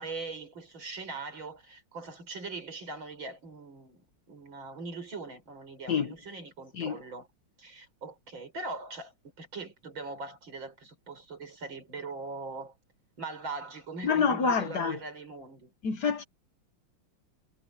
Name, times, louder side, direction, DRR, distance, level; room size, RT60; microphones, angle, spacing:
voice 1, 0.0-7.3 7.6-9.1 9.4-12.7 13.2-15.7, right 3 dB, 65° right, 6.7 m, -41 dB
voice 2, 14.0-15.0 15.8-16.2, left 5 dB, 55° left, 1.7 m, -27 dB
omnidirectional pair, 2.3 m